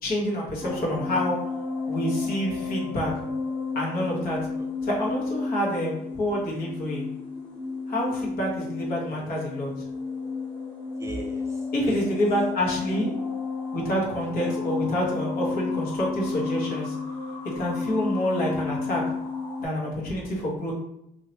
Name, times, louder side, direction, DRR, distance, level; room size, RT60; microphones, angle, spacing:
voice 1, 0.0-1.4 1.9-3.1 3.7-4.4 4.8-7.0 7.9-9.7 11.7-13.1 13.7-16.9 17.5-19.0 19.6-20.7, equal, 60° left, -3 dB, 1.3 m, -27 dB
sound 1, 0.6-19.7, left 4 dB, 25° left, 1.1 m, -32 dB
voice 2, 11.0-12.1 14.5-14.6, right 2 dB, 15° right, 1 dB, 0.4 m, -40 dB
2.9 x 2.9 x 2.8 m, 0.82 s
cardioid pair, 110°, 17 cm